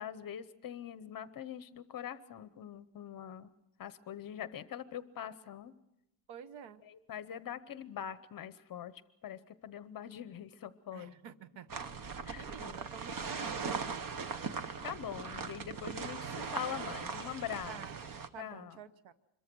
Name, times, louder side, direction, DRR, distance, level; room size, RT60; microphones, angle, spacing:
voice 1, 0.0-3.5 3.8-5.7 6.9-8.9 9.2-11.1 12.3-12.7 14.8-17.8 18.4-18.8, left 9 dB, 45° left, 13 dB, 0.9 m, -43 dB
voice 2, 6.3-6.8 10.9-14.1 17.7-18.0 18.3-19.1, right 8 dB, 75° right, 12 dB, 1.1 m, -50 dB
sound 1, 11.7-18.3, right 5 dB, 45° right, 1.2 m, -40 dB
26.0 x 22.5 x 6.2 m, 0.88 s
cardioid pair, 170°, 47 cm